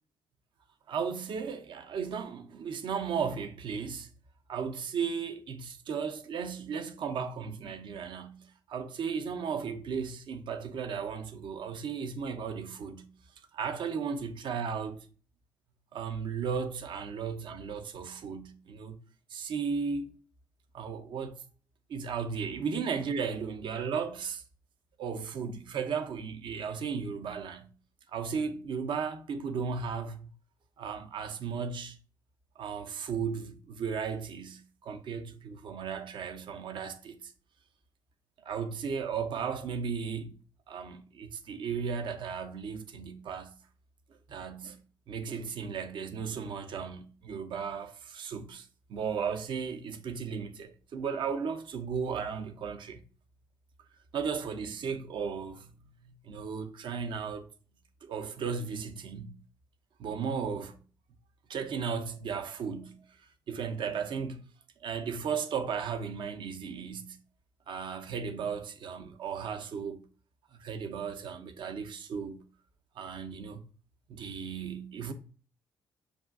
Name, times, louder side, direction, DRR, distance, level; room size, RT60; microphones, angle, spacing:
voice 1, 0.9-4.1 4.5-13.1 13.5-15.0 15.9-19.0 19.3-20.2 20.7-21.4 21.9-24.4 25.0-27.7 28.1-30.3 30.8-32.0 32.6-37.3 38.4-40.3 40.7-43.5 44.3-44.8 45.1-53.0 54.1-55.7 56.0-57.5 58.0-59.4 60.0-60.8 61.5-63.0 63.5-64.4 64.8-67.2 67.7-70.0 70.5-72.4 73.0-73.7 74.1-75.1, right 6 dB, 50° right, 0.6 m, -35 dB
6.7 x 2.5 x 2.4 m
figure-of-eight pair, 40°, 11 cm